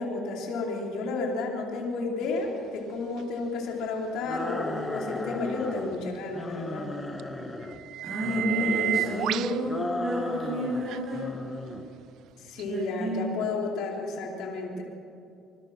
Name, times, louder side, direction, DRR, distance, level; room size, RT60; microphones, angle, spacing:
voice 1, 0.0-6.9 12.4-14.8, left 3 dB, 70° left, 0 dB, 4.3 m, -32 dB
sound 1, 3.2-3.3 7.2-7.3 7.7-9.6 10.9-11.0 12.6-12.7, right 13 dB, 65° right, 0.5 m, -30 dB
sound 2, 4.2-6.0 6.3-7.8 8.2-9.3 9.7-10.9 11.1-11.9, left 1 dB, 10° left, 1.8 m, -35 dB
voice 2, 8.0-11.2 12.6-13.2, equal, 30° right, -5 dB, 7.5 m, -30 dB
26.0 x 21.0 x 6.1 m, 2.5 s
cardioid pair, 130°, 0 cm